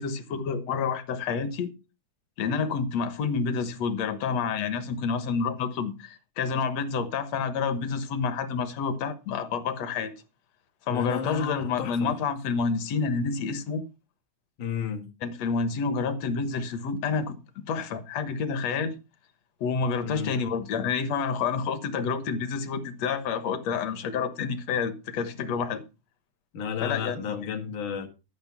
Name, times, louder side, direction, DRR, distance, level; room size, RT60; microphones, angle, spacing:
voice 1, 0.0-1.7 2.4-10.1 10.9-13.8 15.2-17.4 17.7-18.9 19.6-25.8 26.8-27.5, left 5 dB, 65° left, 2.2 m, -29 dB
voice 2, 10.9-12.1 14.6-15.1 20.0-20.3 26.5-28.1, left 7 dB, 85° left, 3.3 m, -32 dB
13.5 x 6.2 x 5.9 m
omnidirectional pair, 3.4 m